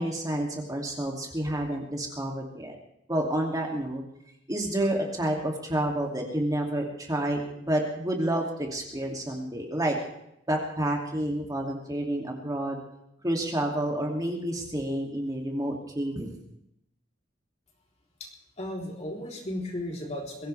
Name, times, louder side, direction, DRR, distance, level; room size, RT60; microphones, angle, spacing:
voice 1, 0.0-2.8 3.1-4.0 4.5-7.4 7.7-10.0 10.5-12.8 13.2-16.4, right 1 dB, 20° right, 0 dB, 2.7 m, -29 dB
voice 2, 18.6-20.5, left 1 dB, 35° left, -1 dB, 3.8 m, -35 dB
22.5 x 16.5 x 3.5 m, 0.79 s
head